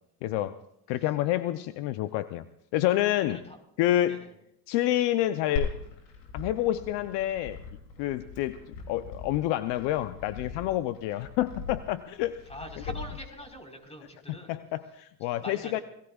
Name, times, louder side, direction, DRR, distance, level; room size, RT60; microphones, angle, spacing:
voice 1, 0.2-0.6 0.9-2.4 2.7-3.4 3.8-4.2 4.7-5.7 6.3-7.6 8.0-12.4 14.3-15.8, left 14 dB, 60° left, 11 dB, 0.8 m, -28 dB
Glass, 5.6-13.5, left 4 dB, 90° left, 6.7 m, -39 dB
voice 2, 12.5-14.5 15.3-15.8, equal, 15° left, 2 dB, 4.4 m, -43 dB
29.5 x 19.0 x 2.4 m, 0.75 s
supercardioid pair, 110°, 49 cm